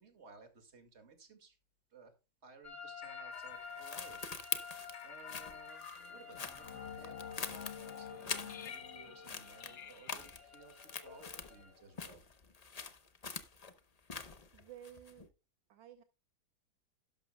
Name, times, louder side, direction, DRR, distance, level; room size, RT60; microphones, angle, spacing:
voice 1, 0.0-1.6 1.9-2.1 2.4-12.2, right 4 dB, 35° right, 7 dB, 2.1 m, -58 dB
sound 1, 2.6-11.7, left 5 dB, 25° left, 2.1 m, -52 dB
sound 2, 3.0-11.9, left 8 dB, 50° left, 0.9 m, -50 dB
sound 3, 3.3-9.0 9.2-11.6 11.9-15.3, left 5 dB, 85° left, 0.3 m, -44 dB
voice 2, 14.5-15.3 15.7-16.0, right 10 dB, 75° right, 9 dB, 1.5 m, -53 dB
11.5 x 11.5 x 2.2 m, 0.28 s
omnidirectional pair, 2.1 m